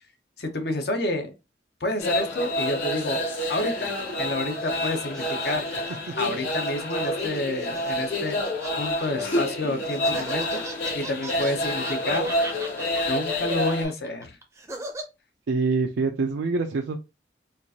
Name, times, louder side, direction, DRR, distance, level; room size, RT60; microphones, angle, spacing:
voice 1, 0.4-1.3 1.8-3.2 3.5-3.9 4.2-5.6 6.2-8.4 8.7-12.3 13.1-14.4, left 2 dB, 60° left, 6 dB, 0.8 m, -29 dB
sound 1, 2.0-13.8, left 1 dB, 85° left, 2.1 m, -28 dB
sound 2, 4.0-9.4 9.8-15.0, right 2 dB, 15° right, 0.5 m, -40 dB
voice 2, 15.5-17.0, right 4 dB, 75° right, 3 dB, 0.4 m, -25 dB
4.4 x 2.5 x 2.7 m, 0.26 s
head